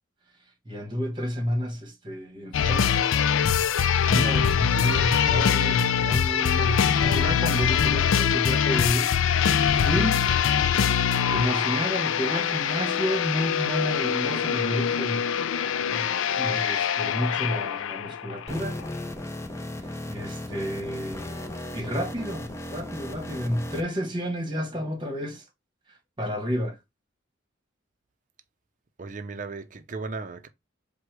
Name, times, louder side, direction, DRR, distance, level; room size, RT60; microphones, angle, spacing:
voice 1, 0.6-3.0 4.0-10.2 11.3-15.3 15.9-16.1 16.3-18.8 20.1-21.4 21.7-25.4 26.2-26.8, equal, 25° right, 1.2 m, -30 dB
sound 1, 2.5-18.5 18.8-18.9, left 8 dB, 80° left, 0.4 m, -23 dB
sound 2, 18.5-23.8, left 1 dB, 15° left, 0.5 m, -36 dB
voice 2, 29.0-30.5, right 3 dB, 40° right, 0.5 m, -36 dB
4.8 x 2.2 x 4.5 m
head